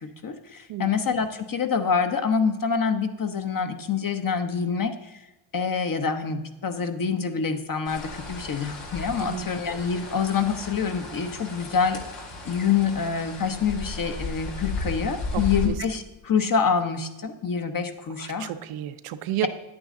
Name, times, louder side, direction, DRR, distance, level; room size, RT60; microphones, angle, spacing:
voice 1, 0.0-5.2 5.5-12.0 12.5-18.5, left 6 dB, 40° left, 7 dB, 1.1 m, -26 dB
sound 1, 7.8-15.7, left 3 dB, 90° left, 2.3 m, -35 dB
voice 2, 15.3-15.7 18.2-19.5, right 12 dB, 80° right, 10 dB, 0.7 m, -32 dB
10.0 x 8.7 x 3.8 m, 1.1 s
cardioid pair, 75°, 50 cm